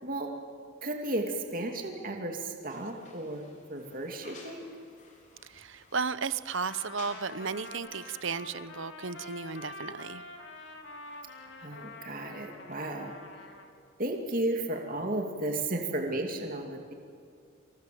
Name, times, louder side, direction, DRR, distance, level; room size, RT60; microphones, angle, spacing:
voice 1, 0.8-4.6 11.6-13.1 14.0-16.9, right 1 dB, 40° right, 2 dB, 2.6 m, -34 dB
sound 1, 2.7-7.4 7.7-7.8, left 3 dB, 35° left, 4.3 m, -54 dB
voice 2, 5.4-10.2, right 5 dB, 60° right, 14 dB, 0.9 m, -34 dB
Trumpet, 6.5-13.7, left 2 dB, 55° left, 2.7 m, -46 dB
27.5 x 27.0 x 7.8 m, 2.2 s
head